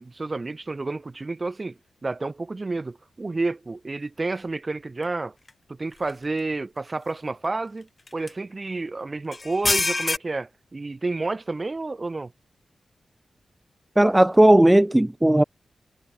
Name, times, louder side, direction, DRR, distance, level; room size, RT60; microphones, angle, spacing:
voice 1, 0.0-5.3 5.7-12.3, right 3 dB, 40° right, 2.6 m, -30 dB
sound 1, 5.5-5.6 6.1-6.2 8.1-8.3 9.3-10.2, left 3 dB, 40° left, 0.7 m, -24 dB
voice 2, 14.0-15.4, right 1 dB, 15° right, 1.4 m, -16 dB
supercardioid pair, 40°, 0 cm